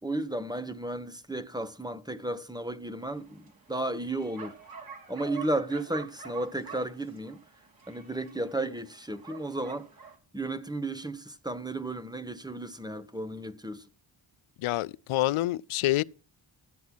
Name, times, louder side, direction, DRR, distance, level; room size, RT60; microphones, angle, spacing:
voice 1, 0.0-4.5 5.1-7.4 7.9-9.9 10.3-13.9, right 2 dB, 10° right, 1.5 m, -34 dB
Bark, 3.0-10.2, right 6 dB, 45° right, 3.6 m, -47 dB
voice 2, 14.6-16.0, left 16 dB, 75° left, 0.6 m, -27 dB
14.5 x 8.0 x 6.2 m
cardioid pair, 50°, 50 cm